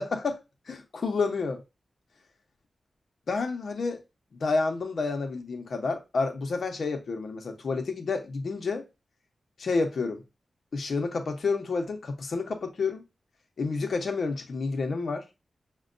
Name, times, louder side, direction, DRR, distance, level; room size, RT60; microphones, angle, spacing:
voice 1, 0.0-0.4 0.7-1.6 3.3-4.0 4.3-8.8 9.6-10.2 10.7-13.0 13.6-15.2, left 4 dB, 65° left, 0.8 m, -29 dB
6.3 x 2.2 x 2.4 m
wide cardioid pair, 110°, 0 cm